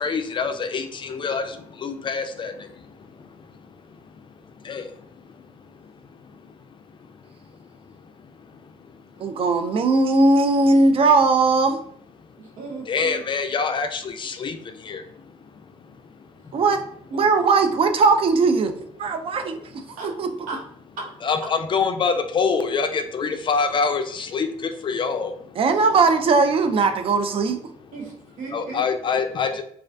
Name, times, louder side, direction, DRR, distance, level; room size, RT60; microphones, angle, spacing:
voice 1, 0.0-4.1 4.6-6.8 7.6-7.7 8.0-8.1 8.4-8.8 9.2-9.3 12.9-16.6 19.9-20.0 21.2-25.6 28.5-29.6, left 5 dB, 40° left, 7 dB, 0.3 m, -27 dB
voice 2, 9.2-11.8 16.5-16.8 17.1-18.7 19.0-19.5 20.2-20.3 25.6-27.6, right 3 dB, 45° right, 7 dB, 0.4 m, -18 dB
voice 3, 12.4-13.2 20.0-20.1 20.5-20.6 21.0-21.1 25.6-25.9 27.9-28.8, right 3 dB, 80° right, 0 dB, 0.7 m, -36 dB
2.3 x 2.1 x 2.5 m, 0.64 s
supercardioid pair, 70°, 13 cm